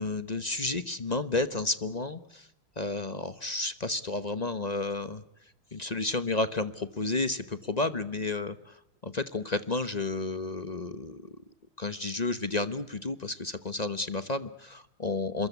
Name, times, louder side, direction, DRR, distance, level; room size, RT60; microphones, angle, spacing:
voice 1, 0.0-2.5 2.8-5.2 5.7-8.8 9.0-11.4 11.8-15.5, left 3 dB, 30° left, 13 dB, 0.7 m, -31 dB
27.0 x 22.0 x 8.2 m, 0.78 s
omnidirectional pair, 2.3 m